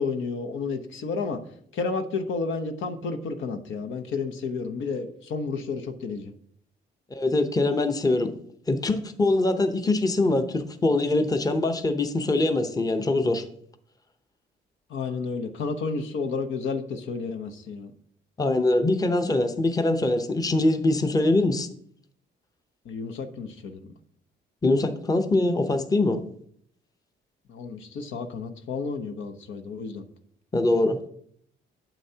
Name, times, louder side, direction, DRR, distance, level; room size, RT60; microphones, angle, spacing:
voice 1, 0.0-1.4 1.7-6.3 14.9-17.9 22.9-23.8 27.5-30.0, left 4 dB, 75° left, 6 dB, 0.9 m, -31 dB
voice 2, 7.1-8.3 8.7-13.4 18.4-21.7 24.6-26.2 30.5-31.0, left 2 dB, 20° left, 7 dB, 0.8 m, -23 dB
9.1 x 7.0 x 2.8 m, 0.64 s
cardioid pair, 90°, 20 cm